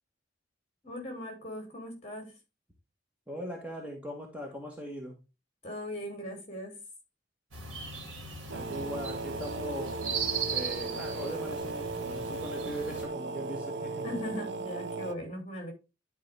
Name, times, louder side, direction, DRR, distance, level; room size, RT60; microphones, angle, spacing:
voice 1, 0.8-2.3 5.6-6.8 14.0-15.7, equal, 30° left, 3.0 m, -39 dB
voice 2, 3.3-5.1 8.5-10.0 10.5-14.1, equal, 5° right, 1.5 m, -40 dB
sound 1, 7.5-13.1, right 5 dB, 90° right, 2.5 m, -38 dB
sound 2, 8.5-15.1, right 3 dB, 60° right, 0.6 m, -37 dB
10.5 x 4.8 x 3.5 m
head